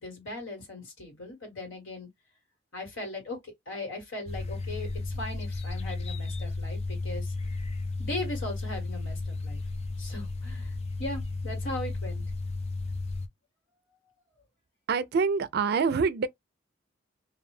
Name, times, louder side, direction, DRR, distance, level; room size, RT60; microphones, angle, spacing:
voice 1, 0.0-2.1 2.7-7.3 8.0-9.6 10.0-12.2, left 2 dB, 80° left, 1.5 m, -38 dB
sound 1, 4.3-13.3, left 3 dB, 35° left, 0.4 m, -34 dB
voice 2, 14.9-16.3, right 5 dB, 55° right, 0.3 m, -25 dB
2.5 x 2.1 x 3.1 m
head